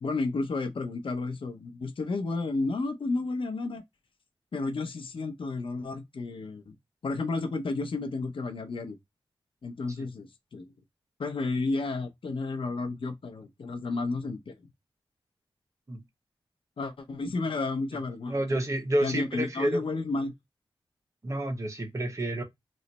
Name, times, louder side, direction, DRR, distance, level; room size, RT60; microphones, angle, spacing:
voice 1, 0.0-3.8 4.5-6.7 7.0-9.0 9.6-10.7 11.2-14.5 16.8-18.6 19.0-20.3, left 3 dB, 65° left, 0.6 m, -32 dB
voice 2, 18.3-19.8 21.2-22.4, right 1 dB, 35° right, 0.9 m, -29 dB
3.1 x 2.0 x 4.0 m
wide cardioid pair, 75°, 9 cm